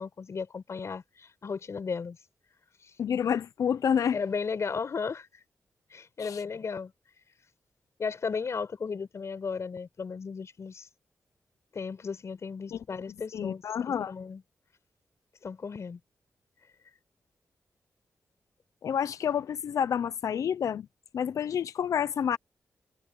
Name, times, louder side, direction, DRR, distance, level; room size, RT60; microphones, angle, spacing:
voice 1, 0.0-2.2 2.8-2.9 4.1-5.3 5.9-6.9 8.0-10.9 11.7-14.4 15.4-16.0, left 5 dB, 60° left, 5.4 m, -35 dB
voice 2, 3.0-4.2 6.2-6.4 12.7-12.8 13.3-14.1 18.8-20.9 21.1-22.4, left 8 dB, 80° left, 0.7 m, -29 dB
cardioid pair, 70°, 6 cm